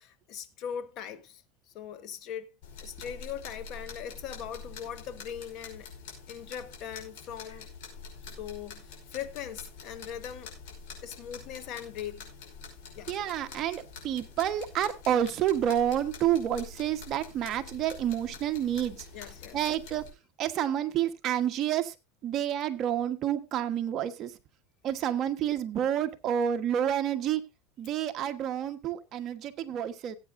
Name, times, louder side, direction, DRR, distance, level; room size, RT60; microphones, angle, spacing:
voice 1, 0.0-1.4 1.7-2.5 2.8-5.9 6.3-7.7 8.3-10.5 11.0-12.3 12.9-13.1 19.1-19.7, left 9 dB, 50° left, 1.4 m, -40 dB
sound 1, 2.6-20.1, left 5 dB, 70° left, 5.4 m, -46 dB
voice 2, 13.1-19.0 19.5-20.1 20.4-21.9 22.2-24.3 24.8-27.4 27.8-30.2, right 10 dB, 40° right, 1.2 m, -29 dB
18.5 x 8.6 x 2.6 m
supercardioid pair, 130°, 0 cm